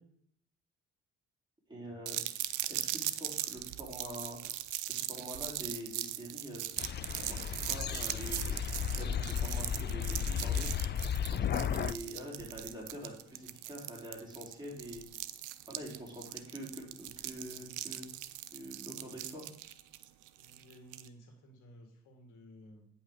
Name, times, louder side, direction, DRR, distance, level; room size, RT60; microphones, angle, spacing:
voice 1, 1.7-2.2 2.7-4.4 4.9-6.8 7.3-8.6 9.0-10.9 11.3-15.0 15.7-18.1 18.5-19.5, equal, 15° right, -3 dB, 4.2 m, -45 dB
sound 1, 2.1-21.1, right 14 dB, 85° right, 0.6 m, -40 dB
sound 2, 6.8-11.9, left 8 dB, 35° left, 0.4 m, -34 dB
voice 2, 20.4-22.9, equal, 90° left, 4 dB, 1.9 m, -56 dB
9.0 x 5.4 x 5.3 m, 0.68 s
cardioid pair, 90°, 30 cm